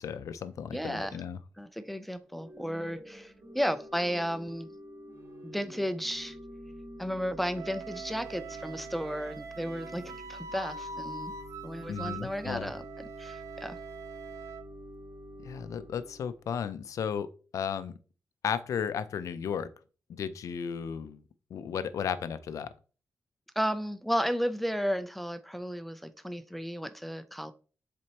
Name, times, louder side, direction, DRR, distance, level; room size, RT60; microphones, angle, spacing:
voice 1, 0.0-1.4 11.9-12.7 15.4-17.3 17.5-17.9 18.4-19.7 20.1-21.2 21.5-22.7, left 7 dB, 80° left, 0.5 m, -34 dB
voice 2, 0.7-1.2 1.6-4.7 5.4-6.4 7.0-11.3 11.6-13.8 23.6-27.5, equal, ahead, 0.4 m, -33 dB
Organ / Church bell, 2.3-16.4, equal, 55° right, 2.7 m, -47 dB
Wind instrument woodwind instrument, 7.5-14.6, right 4 dB, 75° right, 0.8 m, -43 dB
7.6 x 4.2 x 2.9 m
wide cardioid pair, 120°, 5 cm